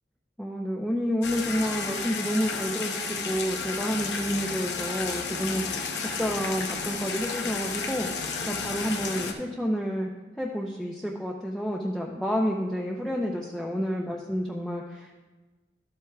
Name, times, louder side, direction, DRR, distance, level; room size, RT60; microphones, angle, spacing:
voice 1, 0.4-10.1 10.4-15.2, equal, 5° left, -2 dB, 0.5 m, -30 dB
sound 1, 1.2-9.3, left 4 dB, 80° left, 0.8 m, -32 dB
13.0 x 7.9 x 2.3 m, 1.2 s
head